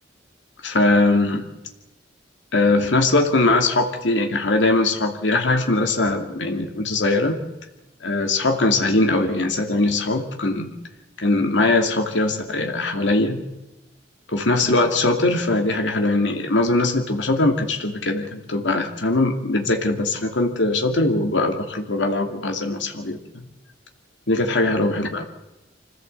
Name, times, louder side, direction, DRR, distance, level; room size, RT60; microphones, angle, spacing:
voice 1, 0.6-1.5 2.5-7.3 8.0-10.7 11.2-13.4 14.3-23.2 24.3-25.2, left 2 dB, 85° left, 3 dB, 2.5 m, -21 dB
25.5 x 16.0 x 8.0 m, 0.94 s
head